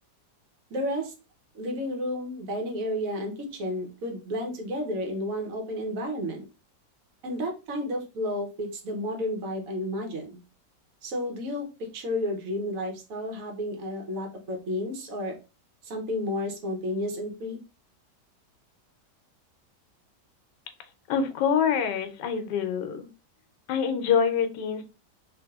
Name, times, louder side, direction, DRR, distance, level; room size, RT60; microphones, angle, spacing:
voice 1, 0.7-1.1 1.5-6.4 7.2-10.4 11.0-15.4 15.8-17.6, left 1 dB, 60° right, 2 dB, 1.1 m, -32 dB
voice 2, 21.1-23.1 23.7-24.8, left 7 dB, 80° left, 7 dB, 1.2 m, -25 dB
3.3 x 2.6 x 2.3 m, 0.30 s
omnidirectional pair, 1.8 m